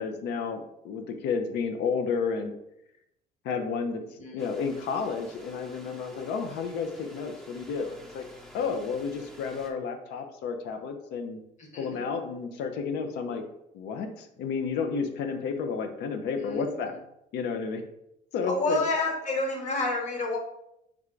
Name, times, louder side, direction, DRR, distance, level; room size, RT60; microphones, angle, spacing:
voice 1, 0.0-2.5 3.4-4.0 4.3-8.2 8.5-11.4 11.8-13.4 13.7-17.0 17.3-17.8 18.3-18.8, left 5 dB, 85° left, 6 dB, 0.6 m, -31 dB
sound 1, 4.4-9.7, equal, 5° left, 0.7 m, -50 dB
voice 2, 11.6-12.0 16.3-17.0 18.4-20.4, left 2 dB, 45° left, 1 dB, 1.2 m, -29 dB
3.5 x 3.2 x 3.7 m, 0.81 s
cardioid pair, 110°, 17 cm